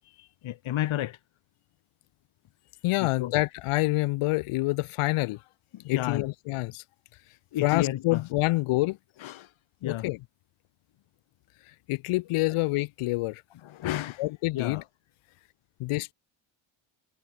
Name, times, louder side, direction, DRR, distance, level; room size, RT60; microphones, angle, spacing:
voice 1, 0.4-1.2 3.0-3.3 5.7-6.2 7.5-8.2 9.2-9.5 9.8-10.1 13.6-14.2 14.5-14.8, left 13 dB, 65° left, 2.4 m, -31 dB
voice 2, 2.8-5.4 5.8-6.8 7.6-9.0 9.8-10.2 11.9-13.4 14.2-14.8 15.8-16.1, left 20 dB, 90° left, 3.1 m, -27 dB
cardioid pair, 90°, 50 cm